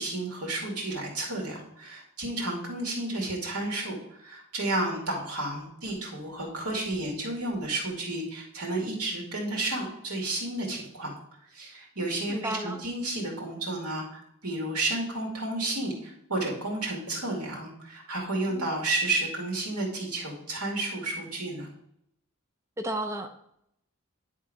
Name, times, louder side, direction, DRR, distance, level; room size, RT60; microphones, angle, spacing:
voice 1, 0.0-11.1 11.5-21.7, right 2 dB, 85° right, -1 dB, 2.4 m, -32 dB
voice 2, 12.3-12.8 18.5-18.7 22.8-23.4, right 1 dB, 15° right, 4 dB, 0.5 m, -33 dB
10.0 x 3.7 x 4.9 m, 0.74 s
head